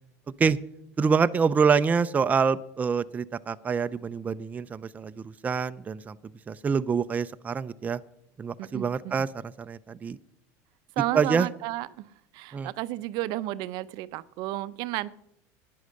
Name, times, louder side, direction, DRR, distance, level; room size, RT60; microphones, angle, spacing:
voice 1, 1.0-6.2 6.5-8.0 8.4-10.2 11.1-11.5 12.5-12.7, right 5 dB, 20° right, 12 dB, 0.5 m, -26 dB
voice 2, 8.6-9.1 11.0-12.1 12.3-15.2, right 17 dB, 60° right, 16 dB, 0.6 m, -32 dB
11.0 x 9.5 x 6.4 m, 0.76 s
supercardioid pair, 120°, 8 cm